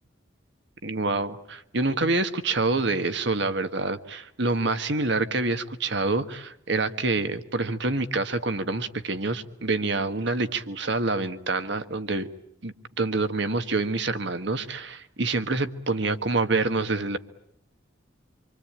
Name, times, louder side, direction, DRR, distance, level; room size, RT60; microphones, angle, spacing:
voice 1, 0.8-12.3 12.6-17.2, right 3 dB, 60° right, 1.5 m, -27 dB
26.5 x 25.0 x 8.8 m
head